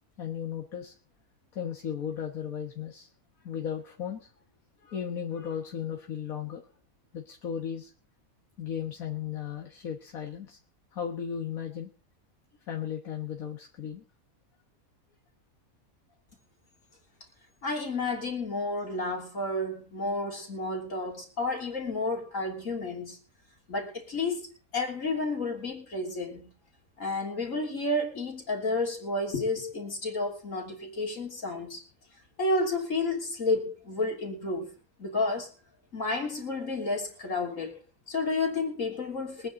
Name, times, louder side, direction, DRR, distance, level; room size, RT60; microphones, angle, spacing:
voice 1, 0.2-0.9 1.5-3.1 3.4-4.3 4.8-6.6 7.1-7.9 8.6-10.6 10.9-11.9 12.7-14.0, left 8 dB, 80° left, 2.0 m, -35 dB
voice 2, 17.6-23.2 23.7-24.5 24.7-26.5 27.0-31.8 32.4-34.7 35.0-35.5 35.9-37.8 38.1-39.5, left 2 dB, 65° left, 3.7 m, -31 dB
23.0 x 9.5 x 3.9 m
omnidirectional pair, 1.5 m